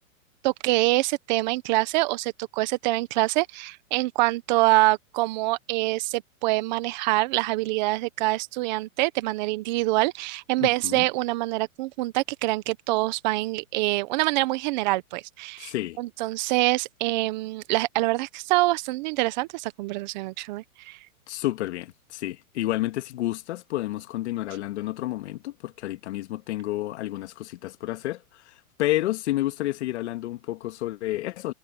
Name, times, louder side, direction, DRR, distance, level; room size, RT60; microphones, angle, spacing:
voice 1, 0.4-21.0, right 20 dB, 30° right, 1.0 m, -25 dB
voice 2, 10.6-11.0 15.6-16.0 21.3-31.5, left 16 dB, 50° left, 2.3 m, -30 dB
hypercardioid pair, 155°, 43 cm